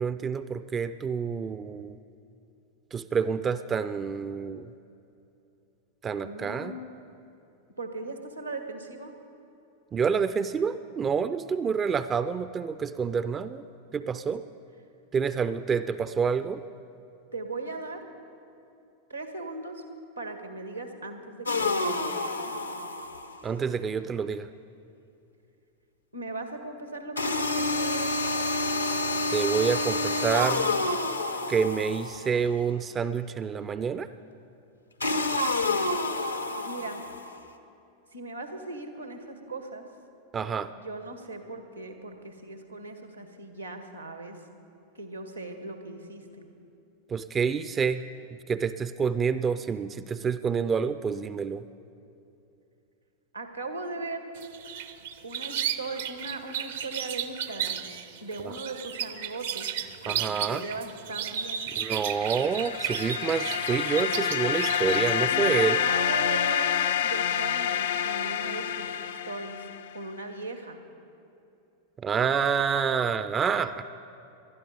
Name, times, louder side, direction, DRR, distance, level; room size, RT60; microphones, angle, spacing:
voice 1, 0.0-2.0 2.9-4.7 6.0-6.8 9.9-13.6 13.9-14.4 15.1-16.6 23.4-24.5 29.3-30.7 31.5-34.1 40.3-40.7 47.1-48.0 48.5-51.6 58.4-58.5 60.1-60.6 61.8-65.8 72.0-73.8, right 6 dB, 20° right, 13 dB, 0.4 m, -28 dB
voice 2, 6.2-6.9 7.8-9.1 17.3-18.0 19.1-19.8 20.2-22.2 26.1-28.2 36.6-37.0 38.1-39.8 40.7-44.4 44.9-46.5 53.3-54.3 55.2-57.8 58.2-59.7 60.0-61.7 65.3-66.8 67.0-69.7 69.9-70.8, right 2 dB, 90° right, 6 dB, 1.6 m, -38 dB
sound 1, 21.5-23.4 27.2-32.4 35.0-37.4, left 2 dB, 85° left, 0.8 m, -28 dB
sound 2, 54.4-65.2, right 9 dB, 60° right, 0.7 m, -34 dB
sound 3, 62.1-69.9, left 9 dB, 60° left, 0.5 m, -28 dB
19.5 x 12.0 x 5.2 m, 2.8 s
figure-of-eight pair, 90°, 0 cm